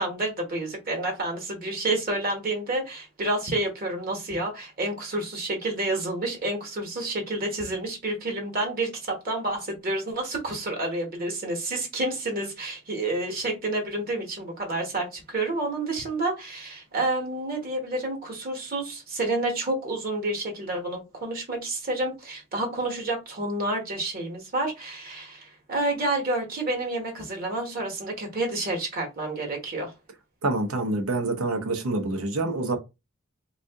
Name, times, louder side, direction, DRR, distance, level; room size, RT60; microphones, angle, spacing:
voice 1, 0.0-29.9, right 2 dB, 45° right, 1.1 m, -29 dB
voice 2, 30.4-32.8, right 2 dB, 80° right, 0.8 m, -26 dB
2.6 x 2.4 x 3.4 m
head